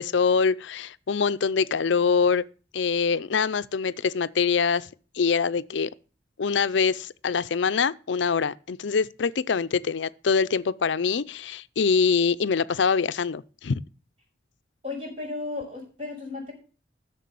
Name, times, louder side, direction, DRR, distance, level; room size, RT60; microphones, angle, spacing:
voice 1, 0.0-2.5 2.7-4.9 5.1-5.9 6.4-13.8, left 5 dB, 75° left, 0.5 m, -24 dB
voice 2, 14.8-16.5, left 3 dB, 30° right, 6.2 m, -34 dB
11.5 x 6.7 x 6.9 m
head